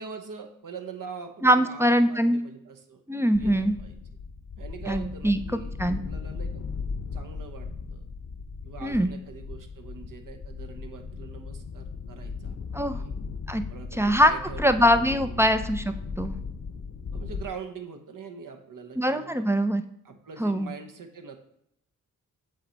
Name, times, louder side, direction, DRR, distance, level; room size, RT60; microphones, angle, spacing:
voice 1, 0.0-3.0 3.4-3.9 4.6-6.7 7.1-8.0 8.6-12.6 12.9-13.1 13.7-15.5 17.1-19.5 20.0-21.4, right 5 dB, 60° right, 6 dB, 1.1 m, -43 dB
voice 2, 1.4-2.4 3.1-3.7 4.9-6.0 8.8-9.1 12.7-13.0 13.5-13.6 14.0-14.3 14.6-16.4 19.0-19.8 20.4-20.7, equal, 5° right, 9 dB, 0.5 m, -23 dB
sound 1, 3.3-17.5, left 5 dB, 45° left, 0.8 m, -37 dB
7.6 x 3.3 x 4.0 m, 0.74 s
supercardioid pair, 40°, 38 cm